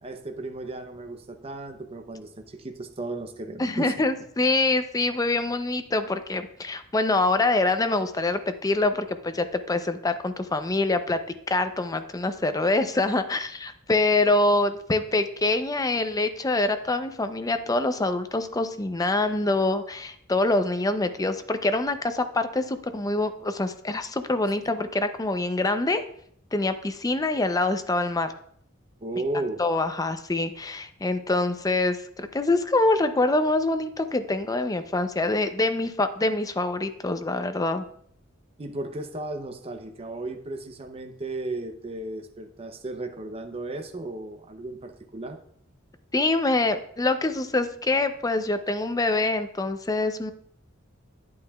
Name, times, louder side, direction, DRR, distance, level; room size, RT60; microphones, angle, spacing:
voice 1, 0.0-3.9 29.0-29.6 38.6-45.4, right 2 dB, 30° right, 6 dB, 0.6 m, -35 dB
voice 2, 3.6-11.2 11.5-26.0 26.5-28.3 29.6-37.8 46.1-50.3, left 2 dB, 20° left, 9 dB, 0.5 m, -25 dB
10.5 x 8.5 x 2.3 m, 0.65 s
head